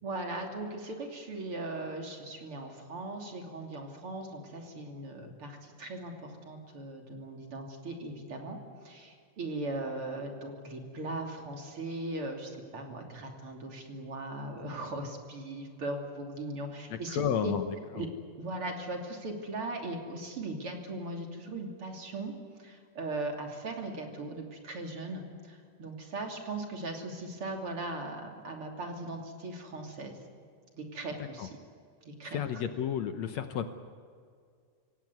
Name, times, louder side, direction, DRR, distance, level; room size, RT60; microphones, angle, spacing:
voice 1, 0.0-17.5 17.9-18.1 18.4-22.3 22.6-30.2 30.7-31.6 32.1-32.6, right 2 dB, 45° right, 2 dB, 3.6 m, -39 dB
voice 2, 16.9-17.7 18.0-18.1 31.4-31.5 32.3-33.7, left 9 dB, 65° left, 8 dB, 2.1 m, -31 dB
26.5 x 17.0 x 9.6 m, 2.1 s
omnidirectional pair, 3.6 m